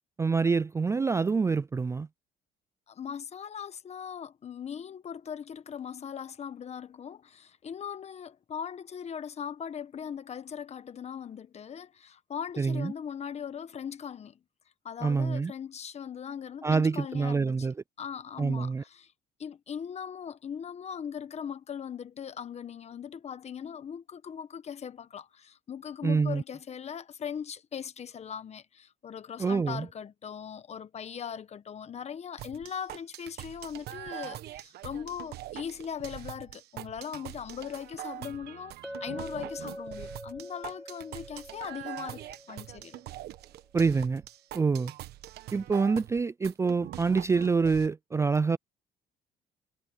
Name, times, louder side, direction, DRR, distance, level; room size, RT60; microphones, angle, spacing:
voice 1, 0.2-2.1 12.6-12.9 15.0-15.5 16.6-17.7 18.4-18.8 26.0-26.4 29.4-29.9 43.7-44.2 44.5-44.9 45.5-48.6, right 4 dB, 15° right, 0.3 m, -26 dB
voice 2, 2.9-14.4 14.8-17.7 18.0-19.1 19.4-43.0, left 8 dB, 40° left, 1.3 m, -40 dB
sound 1, 32.4-47.9, right 14 dB, 75° right, 1.2 m, -43 dB
Chink clink, 38.8-43.0, equal, ahead, 1.6 m, -44 dB
cardioid pair, 110°, 17 cm